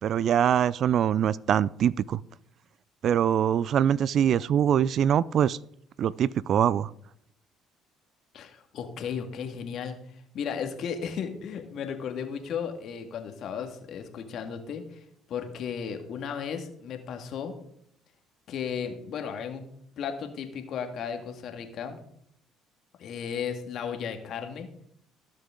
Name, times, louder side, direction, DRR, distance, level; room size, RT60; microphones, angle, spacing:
voice 1, 0.0-2.2 3.0-5.6 6.0-6.9, right 9 dB, 60° right, 0.4 m, -23 dB
voice 2, 8.3-10.0 10.3-15.0 15.3-17.5 18.5-19.7 20.0-22.0 23.0-24.7, left 7 dB, 60° left, 1.9 m, -35 dB
18.0 x 6.6 x 3.7 m
hypercardioid pair, 60°, 0 cm